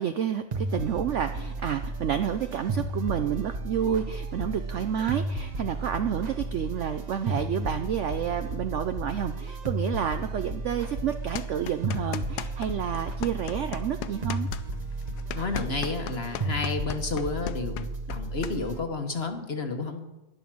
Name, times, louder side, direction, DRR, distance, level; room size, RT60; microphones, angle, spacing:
voice 1, 0.0-14.5, right 9 dB, 65° right, 9 dB, 0.7 m, -30 dB
sound 1, 0.5-18.8, right 2 dB, 35° right, 0.8 m, -33 dB
sound 2, 11.3-12.7 12.9-18.5, left 11 dB, 75° left, 1.2 m, -36 dB
voice 2, 15.3-20.0, left 4 dB, 40° left, 6 dB, 1.3 m, -31 dB
11.0 x 10.5 x 6.1 m, 1.0 s
omnidirectional pair, 1.8 m